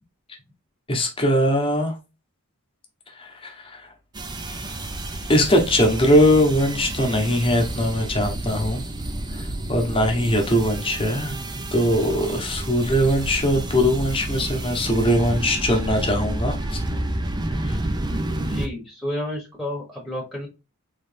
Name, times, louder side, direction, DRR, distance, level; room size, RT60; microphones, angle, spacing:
voice 1, 0.9-1.9 3.2-3.9 5.3-8.8 9.3-11.4 11.7-17.0 17.6-17.8, equal, 25° left, 1.1 m, -21 dB
sound 1, 4.1-18.7, right 1 dB, 20° right, 0.5 m, -30 dB
voice 2, 18.4-20.5, left 1 dB, ahead, 1.1 m, -31 dB
4.0 x 3.2 x 3.3 m
head